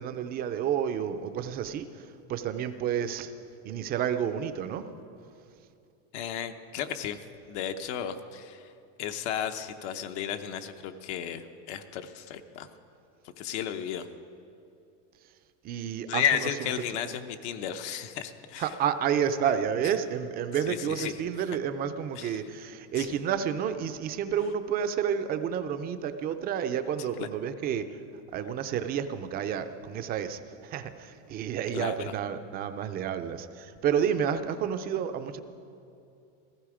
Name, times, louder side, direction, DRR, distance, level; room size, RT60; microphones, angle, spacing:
voice 1, 0.0-3.3 3.6-4.9 15.6-16.2 18.6-28.0 28.3-35.4, right 8 dB, 25° right, 10 dB, 0.5 m, -30 dB
voice 2, 6.1-8.7 9.0-12.7 13.4-14.1 16.1-18.7 20.7-21.2 22.2-22.4 23.0-23.2 27.0-27.3 31.7-32.1, left 9 dB, 65° left, 7 dB, 0.9 m, -33 dB
16.0 x 15.0 x 5.0 m, 2.6 s
supercardioid pair, 160°, 37 cm